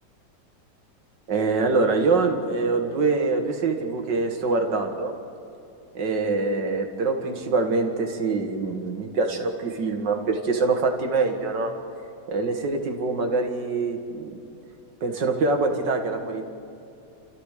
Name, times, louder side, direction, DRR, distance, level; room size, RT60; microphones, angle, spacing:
voice 1, 1.3-5.1 5.9-11.7 12.3-14.4 15.0-16.5, right 3 dB, 75° right, 4 dB, 2.4 m, -24 dB
30.0 x 14.0 x 6.6 m, 2.7 s
omnidirectional pair, 1.9 m